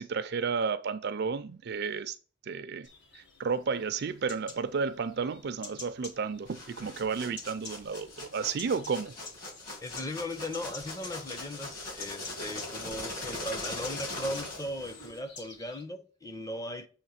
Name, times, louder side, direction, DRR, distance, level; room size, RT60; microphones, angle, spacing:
voice 1, 0.0-2.2 2.4-2.9 3.1-9.2, right 5 dB, 55° right, 0.4 m, -32 dB
sound 1, 2.8-15.8, left 4 dB, 65° left, 1.6 m, -49 dB
Packing Peanuts Box Open, 6.5-15.2, left 2 dB, 45° left, 2.9 m, -41 dB
voice 2, 9.8-16.9, left 1 dB, 15° left, 0.7 m, -38 dB
7.2 x 3.1 x 5.8 m
head